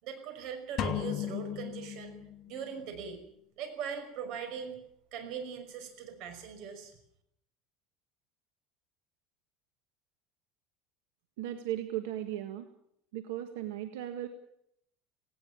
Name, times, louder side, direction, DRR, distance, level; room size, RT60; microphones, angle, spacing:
voice 1, 0.0-2.2 2.5-3.2 3.6-4.8 5.1-7.0, right 7 dB, 55° right, 7 dB, 5.8 m, -40 dB
sound 1, 0.8-2.6, left 9 dB, 35° left, 1.6 m, -35 dB
voice 2, 11.4-12.7 13.1-14.3, right 12 dB, 90° right, 8 dB, 1.8 m, -36 dB
18.5 x 18.0 x 8.9 m, 0.72 s
cardioid pair, 145°, 0 cm